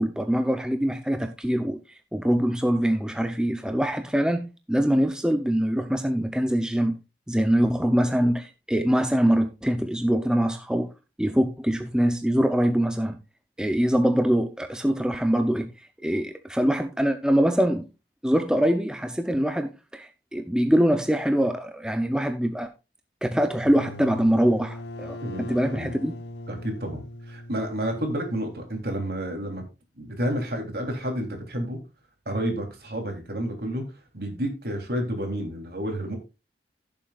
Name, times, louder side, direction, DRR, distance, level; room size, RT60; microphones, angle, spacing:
voice 1, 0.0-1.8 2.1-6.9 7.3-10.9 11.2-13.2 13.6-15.7 16.0-17.9 18.2-22.7 23.2-26.1, equal, 5° right, 0.6 m, -23 dB
sound 1, 23.5-29.0, left 1 dB, 80° left, 1.1 m, -40 dB
voice 2, 25.2-25.9 26.5-27.0 27.3-29.6 30.0-31.8 32.2-33.8 34.1-36.2, equal, 60° right, 3.3 m, -30 dB
16.0 x 7.1 x 2.4 m
head